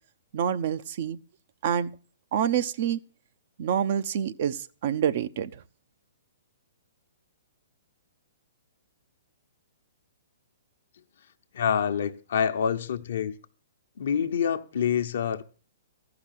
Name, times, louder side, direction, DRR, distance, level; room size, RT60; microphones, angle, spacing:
voice 1, 0.3-1.2 1.6-1.9 2.3-3.0 3.6-5.6, right 9 dB, 55° right, 0.7 m, -27 dB
voice 2, 11.5-13.3 14.0-15.4, left 7 dB, 65° left, 0.9 m, -26 dB
14.5 x 5.9 x 7.4 m
hypercardioid pair, 125°, 0 cm